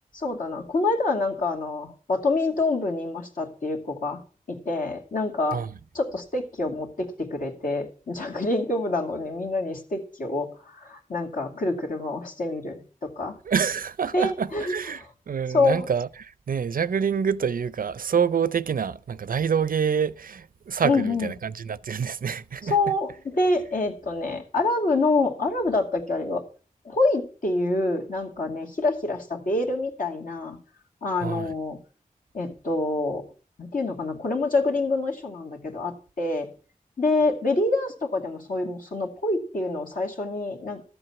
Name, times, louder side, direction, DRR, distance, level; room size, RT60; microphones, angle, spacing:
voice 1, 0.1-4.2 4.5-5.6 5.9-13.4 14.1-15.1 15.5-15.9 20.8-21.3 22.6-26.4 26.8-30.6 31.0-31.8 32.3-33.2 33.6-36.5 37.0-40.8, left 2 dB, 70° left, 2.5 m, -26 dB
voice 2, 13.5-22.7 31.2-31.5, right 7 dB, 75° right, 0.5 m, -27 dB
13.5 x 7.9 x 5.9 m
wide cardioid pair, 95°, 15 cm